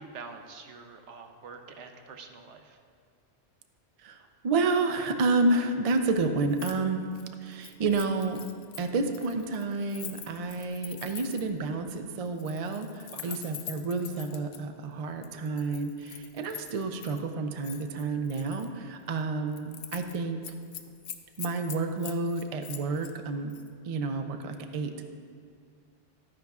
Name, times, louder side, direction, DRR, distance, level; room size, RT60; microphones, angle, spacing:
voice 1, 0.0-2.8 13.1-13.4, right 4 dB, 75° right, 5 dB, 1.0 m, -46 dB
voice 2, 4.4-7.0 7.4-8.5 8.8-20.4 21.4-23.5 23.9-25.0, right 3 dB, 50° right, 6 dB, 0.4 m, -30 dB
Keys jangling, 6.5-6.8 7.1-11.6 12.3-14.6 15.2-17.2 17.6-18.7 19.1-19.2 19.5-20.2 20.4-23.1 23.5-23.7, left 9 dB, 85° left, 0.9 m, -44 dB
12.0 x 9.9 x 2.4 m, 2.1 s
omnidirectional pair, 1.2 m